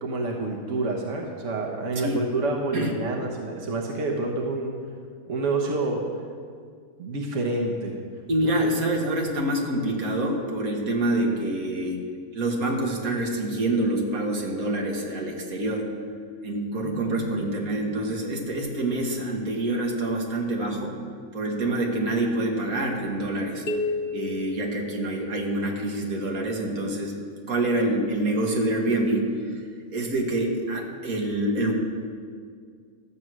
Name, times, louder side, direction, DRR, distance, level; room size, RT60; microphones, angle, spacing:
voice 1, 0.0-4.7 5.3-6.0 7.0-7.9 8.4-8.7 16.8-17.8, right 2 dB, 60° right, 1 dB, 1.4 m, -28 dB
voice 2, 8.3-12.0 12.3-15.9 16.4-21.0 21.3-23.6 24.1-27.2 27.5-29.6 29.9-31.7, right 1 dB, 80° right, 0 dB, 2.0 m, -26 dB
sound 1, 23.7-25.6, left 3 dB, 50° left, 0.9 m, -31 dB
12.5 x 7.7 x 6.1 m, 2.1 s
omnidirectional pair, 1.5 m